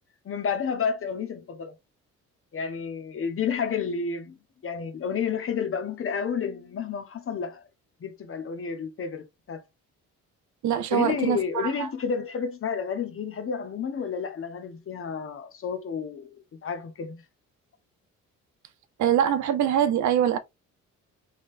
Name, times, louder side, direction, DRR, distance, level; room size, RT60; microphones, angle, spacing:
voice 1, 0.2-1.8 2.5-4.4 4.6-7.7 8.0-9.6 10.9-17.2, left 6 dB, 45° left, 1.1 m, -30 dB
voice 2, 10.6-11.9 19.0-20.4, right 9 dB, 70° right, 0.7 m, -23 dB
3.7 x 3.7 x 2.6 m
cardioid pair, 90°, 30 cm